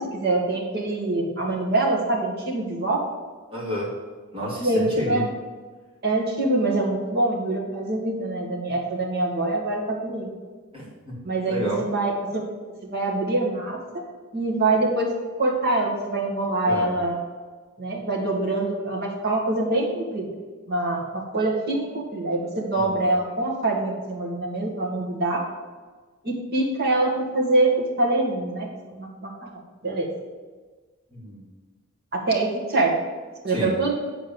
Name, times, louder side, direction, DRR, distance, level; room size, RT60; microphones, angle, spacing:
voice 1, 0.0-3.0 4.6-5.2 6.0-10.3 11.2-12.4 12.8-14.0 14.3-15.1 15.4-17.2 17.8-20.3 20.7-25.4 26.2-29.3 29.8-30.1 32.1-32.9 33.4-34.0, right 2 dB, 45° right, -2 dB, 1.8 m, -24 dB
voice 2, 3.5-3.9 4.3-5.2 10.7-11.2 11.5-11.8 16.7-16.9 22.7-23.1 31.1-31.4 33.5-33.7, equal, 25° right, -6 dB, 2.8 m, -30 dB
7.9 x 4.5 x 7.1 m, 1.4 s
head